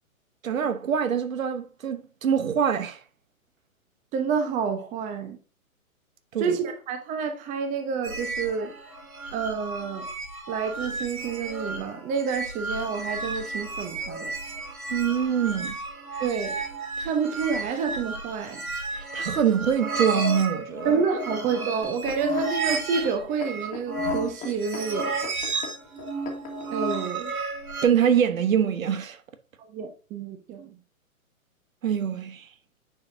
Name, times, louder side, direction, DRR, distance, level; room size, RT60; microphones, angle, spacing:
voice 1, 0.4-3.0 6.3-6.6 14.9-15.8 19.1-20.9 27.8-29.2 31.8-32.5, right 8 dB, 70° right, 1.1 m, -24 dB
voice 2, 4.1-5.4 6.4-8.7 9.3-10.1 10.5-14.3 16.2-16.6 17.0-18.6 20.8-25.1 26.7-27.3 29.7-30.7, right 6 dB, 15° right, 0.9 m, -29 dB
sound 1, 8.0-27.9, right 2 dB, 90° right, 2.2 m, -33 dB
sound 2, 21.8-26.7 27.4-27.5, left 5 dB, 20° left, 1.6 m, -40 dB
9.5 x 5.0 x 2.7 m
hypercardioid pair, 130°, 42 cm